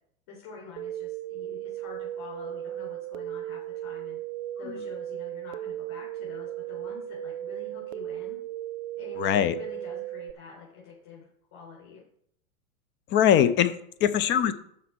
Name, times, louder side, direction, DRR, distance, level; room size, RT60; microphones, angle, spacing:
voice 1, 0.3-4.2 4.6-8.4 9.0-12.0, left 5 dB, 50° left, -4 dB, 4.3 m, -47 dB
sound 1, 0.8-10.3, right 12 dB, 45° right, 0.6 m, -36 dB
voice 2, 9.2-9.6 13.1-14.5, left 9 dB, 25° left, 13 dB, 0.6 m, -22 dB
12.5 x 4.2 x 6.1 m, 0.69 s
hypercardioid pair, 100°, 44 cm